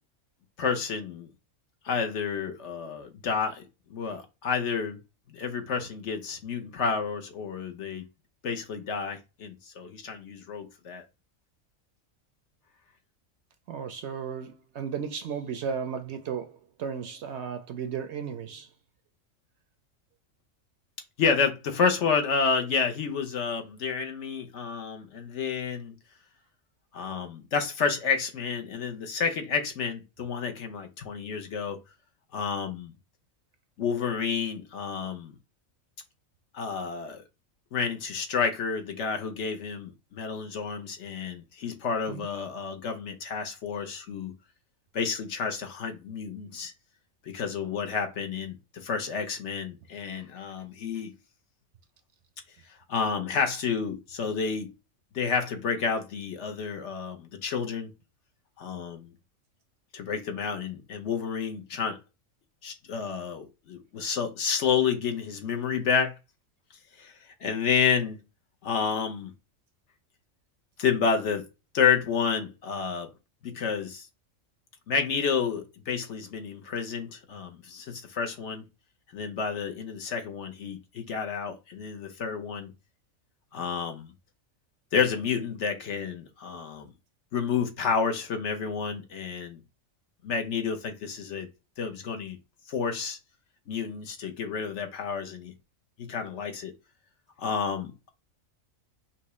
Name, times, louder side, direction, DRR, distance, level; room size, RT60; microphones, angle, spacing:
voice 1, 0.6-1.3 1.8-3.6 3.9-5.0 5.3-8.0 8.4-11.0 21.2-25.9 26.9-31.8 32.3-32.9 33.8-35.3 36.5-37.2 37.7-44.3 44.9-46.7 47.3-51.1 52.9-54.7 55.1-57.9 58.6-59.1 59.9-62.0 62.6-66.1 67.0-67.1 67.4-68.2 68.6-69.3 70.8-71.4 71.7-73.1 73.4-74.1 74.9-78.6 79.1-82.7 83.5-84.1 84.9-86.9 87.3-89.6 90.2-91.5 91.8-92.4 92.7-93.2 93.7-95.5 96.0-96.7 97.4-98.1, left 6 dB, 60° left, 1.0 m, -30 dB
voice 2, 13.7-18.7 42.1-42.3, right 7 dB, 65° right, 0.7 m, -35 dB
5.8 x 2.4 x 3.0 m
omnidirectional pair, 1.4 m